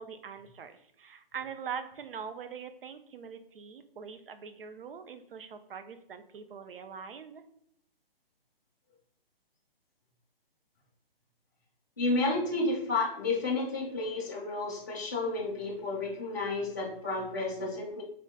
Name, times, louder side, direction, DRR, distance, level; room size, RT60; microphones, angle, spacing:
voice 1, 0.0-7.4, right 7 dB, 65° right, 9 dB, 0.5 m, -43 dB
voice 2, 12.0-18.0, left 2 dB, 20° left, -5 dB, 0.4 m, -31 dB
3.7 x 2.2 x 3.4 m, 0.72 s
hypercardioid pair, 170°, 30 cm